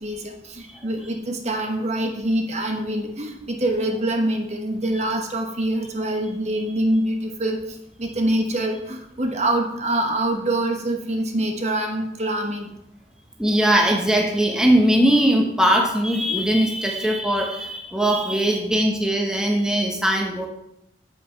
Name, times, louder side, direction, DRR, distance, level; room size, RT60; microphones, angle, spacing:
voice 1, 0.0-7.6 8.0-12.7, right 1 dB, 35° right, 3 dB, 1.2 m, -25 dB
voice 2, 13.4-20.5, right 1 dB, 5° right, 0 dB, 1.0 m, -20 dB
8.3 x 8.0 x 4.5 m, 0.83 s
head